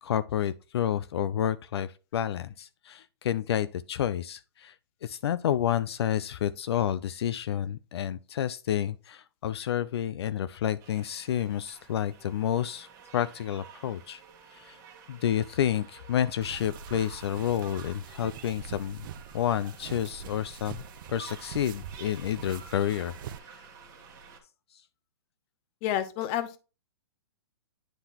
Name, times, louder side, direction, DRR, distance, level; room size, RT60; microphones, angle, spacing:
voice 1, 0.0-4.7 5.0-12.9 13.1-14.2 14.5-14.8 15.1-19.1 19.3-20.8 21.1-23.1, left 10 dB, 65° left, 0.4 m, -30 dB
sound 1, 10.8-24.4, right 6 dB, 25° right, 1.4 m, -51 dB
sound 2, 16.4-23.4, right 7 dB, 50° right, 0.6 m, -44 dB
voice 2, 25.8-26.6, left 11 dB, 30° left, 0.7 m, -29 dB
10.0 x 3.8 x 2.9 m
hypercardioid pair, 145°, 14 cm